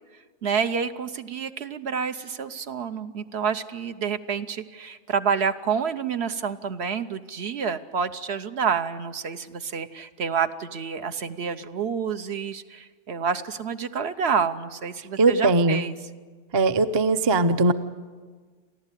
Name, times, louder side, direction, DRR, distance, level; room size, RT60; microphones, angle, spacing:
voice 1, 0.4-15.9, right 6 dB, 65° right, 10 dB, 1.1 m, -28 dB
voice 2, 15.2-15.8 16.5-17.7, right 3 dB, 30° right, 11 dB, 0.5 m, -20 dB
30.0 x 12.0 x 9.9 m, 1.5 s
omnidirectional pair, 1.2 m